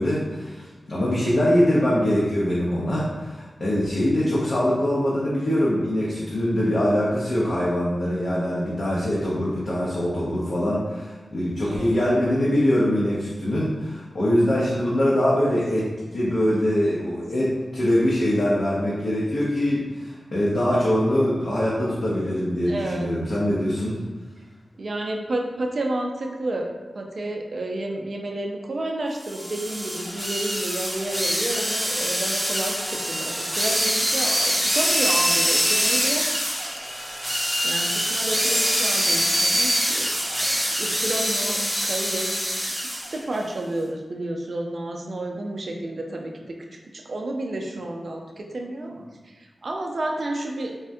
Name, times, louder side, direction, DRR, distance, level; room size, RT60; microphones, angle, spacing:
voice 1, 0.0-24.0, equal, 70° left, -7 dB, 0.5 m, -23 dB
voice 2, 22.7-23.1 24.8-26.7 26.9-36.3 37.2-40.1 40.8-42.3 42.6-46.6 46.9-50.7, right 1 dB, 65° right, 1 dB, 0.4 m, -31 dB
sound 1, 29.2-43.2, equal, 5° right, 0.7 m, -24 dB
3.4 x 2.1 x 2.6 m, 1.3 s
cardioid pair, 40°, 0 cm